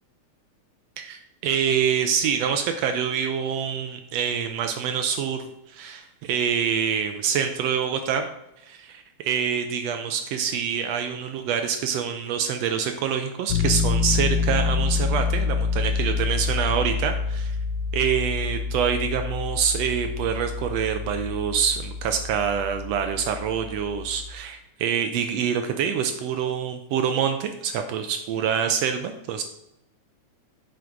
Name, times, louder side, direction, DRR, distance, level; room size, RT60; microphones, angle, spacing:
voice 1, 1.0-8.3 8.6-17.6 17.9-29.4, right 7 dB, 80° right, 6 dB, 1.5 m, -26 dB
Piano, 13.5-24.3, left 5 dB, 80° left, 1.5 m, -27 dB
7.7 x 3.8 x 4.6 m, 0.86 s
omnidirectional pair, 3.4 m